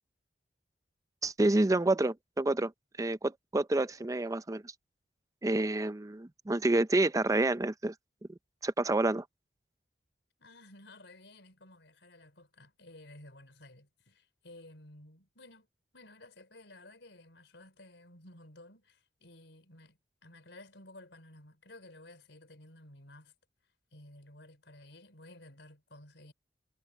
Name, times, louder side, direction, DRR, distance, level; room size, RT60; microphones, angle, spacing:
voice 1, 1.2-2.7 3.0-4.7 5.4-7.9 8.6-9.2, right 2 dB, 20° right, 0.5 m, -28 dB
voice 2, 10.4-15.7 15.9-23.3 23.9-26.3, left 1 dB, 80° left, 4.5 m, -54 dB
head